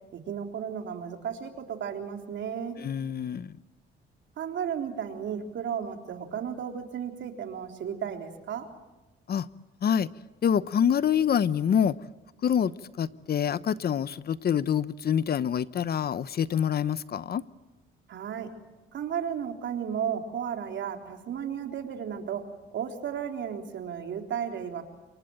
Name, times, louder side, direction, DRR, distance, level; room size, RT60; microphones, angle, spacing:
voice 1, 0.1-2.8 4.4-8.7 18.1-18.5 18.9-22.4 22.7-24.8, right 8 dB, 70° right, 4 dB, 3.7 m, -34 dB
voice 2, 2.8-3.5 9.3-9.5 9.8-10.1 10.4-11.9 12.4-12.7 13.0-17.4, left 8 dB, 50° left, 16 dB, 0.9 m, -26 dB
27.5 x 23.0 x 9.0 m, 1.1 s
cardioid pair, 90°, 20 cm